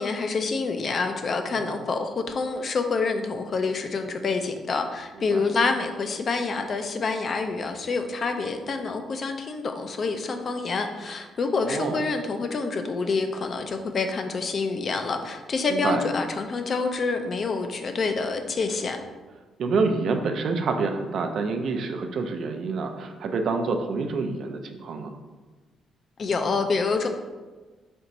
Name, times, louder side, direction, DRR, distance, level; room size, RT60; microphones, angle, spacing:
voice 1, 0.0-19.0 26.2-27.1, left 4 dB, 45° left, 6 dB, 0.5 m, -27 dB
voice 2, 11.6-12.0 15.7-16.0 19.6-25.1, right 4 dB, 65° right, 5 dB, 0.5 m, -27 dB
4.4 x 2.5 x 4.0 m, 1.3 s
cardioid pair, 90°, 0 cm